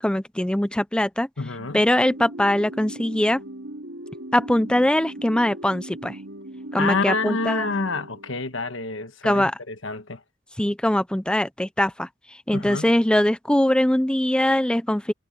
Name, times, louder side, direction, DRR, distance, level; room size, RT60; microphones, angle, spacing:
voice 1, 0.0-1.3 1.7-3.4 4.3-6.2 6.7-7.6 9.2-9.6 10.6-15.1, left 1 dB, 5° left, 0.5 m, -22 dB
voice 2, 1.4-1.8 6.8-10.2 12.5-12.9, left 3 dB, 80° left, 1.4 m, -28 dB
sound 1, 1.6-8.7, right 1 dB, 85° right, 2.5 m, -39 dB
head